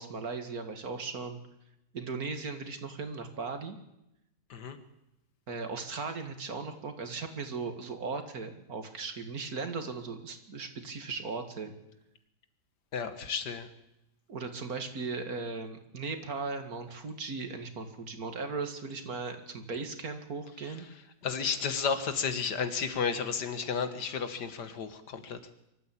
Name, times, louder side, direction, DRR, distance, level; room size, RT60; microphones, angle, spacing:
voice 1, 0.0-1.4 1.9-3.8 5.5-11.7 14.3-20.9, right 4 dB, 55° right, 7 dB, 2.5 m, -37 dB
voice 2, 12.9-13.7 21.2-25.4, left 6 dB, 70° left, 10 dB, 2.2 m, -32 dB
24.5 x 14.0 x 8.7 m, 0.87 s
omnidirectional pair, 1.9 m